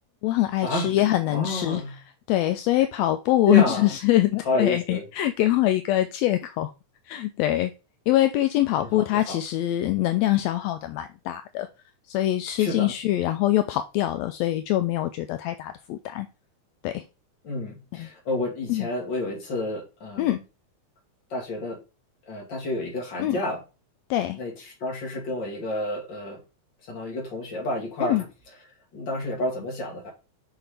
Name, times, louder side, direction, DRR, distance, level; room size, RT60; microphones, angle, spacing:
voice 1, 0.2-1.8 2.3-6.7 7.1-7.7 8.1-11.7 12.1-16.3 16.8-17.0 17.9-18.1 18.7-18.9 20.2-20.4 23.2-23.4 24.1-24.4 28.1-28.2, left 14 dB, 80° left, 1.6 m, -24 dB
voice 2, 1.3-1.9 3.5-3.9 4.5-5.0 8.8-9.4 12.6-12.9 17.4-20.4 21.3-21.8 22.3-23.6 24.4-24.5 24.8-26.4 26.9-28.2 28.9-30.1, left 1 dB, 40° left, 2.3 m, -30 dB
6.2 x 5.5 x 3.4 m
omnidirectional pair, 3.4 m